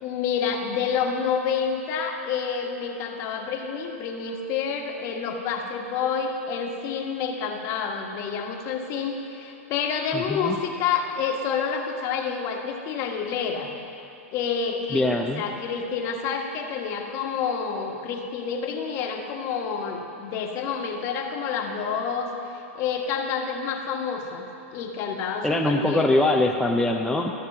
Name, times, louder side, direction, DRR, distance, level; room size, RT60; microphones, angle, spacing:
voice 1, 0.0-13.7 14.3-24.5 24.7-26.1, left 6 dB, 40° left, 2 dB, 1.4 m, -28 dB
voice 2, 10.1-10.6 14.9-15.4 25.4-27.3, left 2 dB, 5° left, 0 dB, 0.6 m, -22 dB
13.5 x 6.6 x 7.6 m, 2.8 s
hypercardioid pair, 115°, 8 cm